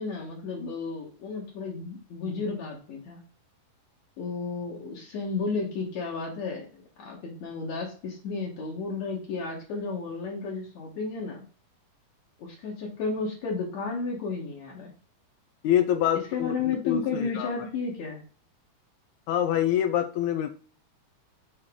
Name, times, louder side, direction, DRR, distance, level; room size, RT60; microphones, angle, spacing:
voice 1, 0.0-3.2 4.2-11.4 12.4-14.9 16.3-18.2, left 4 dB, 65° left, 2.7 m, -33 dB
voice 2, 15.6-17.5 19.3-20.6, left 11 dB, 80° left, 1.9 m, -26 dB
6.6 x 4.6 x 3.7 m
omnidirectional pair, 3.5 m